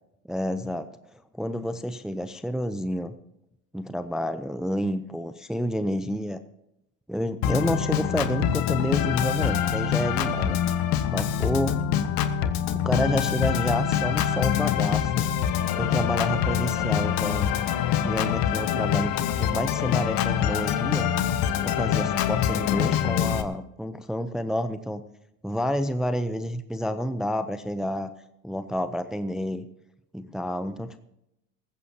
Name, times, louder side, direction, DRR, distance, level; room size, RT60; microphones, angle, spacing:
voice 1, 0.3-3.2 3.7-6.4 7.1-10.6 11.0-11.8 12.5-15.3 15.7-17.5 18.0-21.1 21.6-25.0 25.4-28.1 28.4-29.6 30.1-31.0, equal, ahead, 11 dB, 0.6 m, -29 dB
Organ, 7.4-23.4, left 9 dB, 55° left, 1.3 m, -25 dB
19.5 x 15.5 x 2.9 m, 0.85 s
hypercardioid pair, 80°, 42 cm